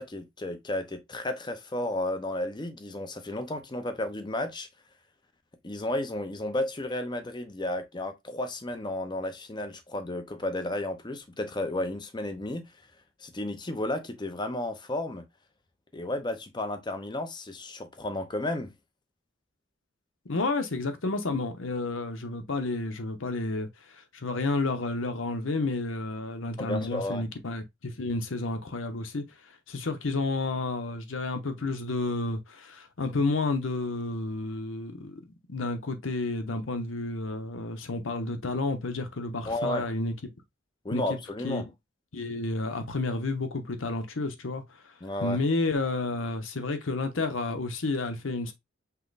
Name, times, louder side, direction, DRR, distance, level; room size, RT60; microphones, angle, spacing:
voice 1, 0.0-4.7 5.6-12.7 13.2-15.2 15.9-18.7 26.6-27.2 39.4-39.9 40.8-41.7 45.0-45.4, left 1 dB, 25° left, 0.7 m, -33 dB
voice 2, 20.3-40.3 40.9-41.2 41.4-41.6 42.1-44.9 45.2-48.5, left 3 dB, 85° left, 0.9 m, -31 dB
5.6 x 2.2 x 4.0 m
head